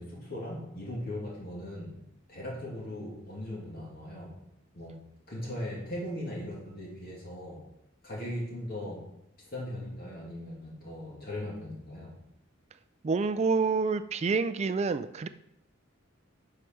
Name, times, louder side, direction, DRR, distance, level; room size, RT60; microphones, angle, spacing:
voice 1, 0.0-1.9 2.3-4.4 4.7-5.0 5.3-7.6 8.0-9.1 9.5-12.2, left 1 dB, 50° left, -4 dB, 2.4 m, -39 dB
voice 2, 13.0-15.3, right 4 dB, 30° right, 12 dB, 0.3 m, -27 dB
11.5 x 4.8 x 4.5 m, 0.80 s
head